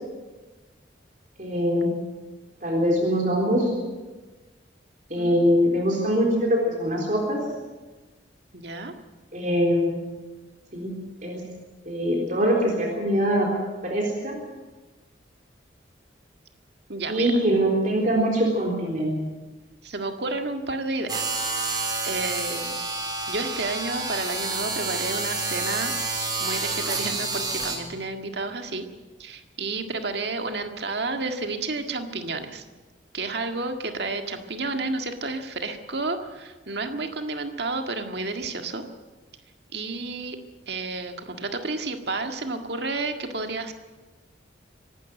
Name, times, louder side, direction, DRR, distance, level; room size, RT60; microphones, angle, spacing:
voice 1, 1.4-1.9 2.6-3.7 5.1-7.4 9.3-10.0 10.7-10.9 11.2-11.4 11.9-13.5 13.8-14.4 17.1-19.2, equal, 40° right, -1 dB, 3.8 m, -23 dB
voice 2, 5.2-5.6 8.5-8.9 16.9-17.3 19.8-21.3 21.7-22.8 23.3-25.9 26.4-28.8 29.2-32.6 33.1-38.8 39.7-40.4 40.7-43.7, right 3 dB, 60° right, 5 dB, 1.8 m, -31 dB
sound 1, 21.1-27.8, right 3 dB, 20° right, 3.5 m, -29 dB
25.0 x 12.0 x 9.2 m, 1.2 s
head